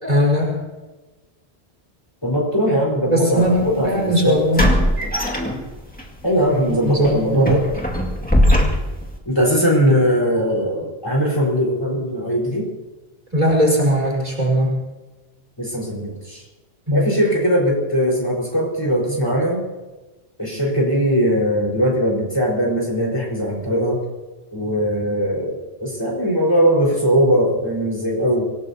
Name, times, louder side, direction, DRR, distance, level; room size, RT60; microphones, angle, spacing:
voice 1, 0.0-0.6 3.1-4.7 6.7-7.6 13.3-14.8 16.9-17.1, equal, 40° right, -2 dB, 5.1 m, -19 dB
voice 2, 2.2-4.4 6.2-7.6 9.2-12.7 15.6-16.4 16.9-19.6 20.4-24.0 24.5-28.4, equal, 25° left, -3 dB, 4.8 m, -20 dB
Door to chimney open and close, 3.4-3.6 4.6-6.0 6.4-6.6 7.0-9.1, equal, 10° left, 2.2 m, -19 dB
26.0 x 17.5 x 2.9 m, 1.2 s
omnidirectional pair, 1.0 m